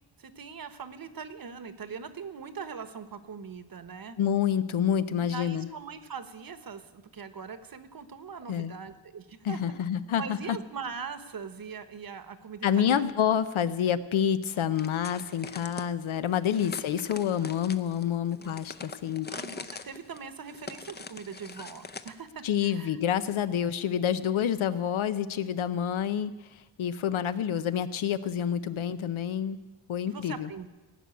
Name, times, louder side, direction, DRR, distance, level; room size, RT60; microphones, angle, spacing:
voice 1, 0.2-4.2 5.2-9.6 10.2-13.1 14.5-14.6 14.9-15.1 18.4-18.6 19.3-23.0 30.0-30.7, right 6 dB, 45° right, 11 dB, 1.1 m, -41 dB
voice 2, 4.2-5.7 8.5-8.7 9.4-10.6 12.6-19.3 22.4-26.3 26.8-29.6 29.9-30.5, left 9 dB, 80° left, 12 dB, 0.8 m, -28 dB
sound 1, 14.8-15.9 16.5-22.2, left 4 dB, 20° left, 0.6 m, -43 dB
18.0 x 6.2 x 9.4 m, 1.2 s
wide cardioid pair, 95°, 47 cm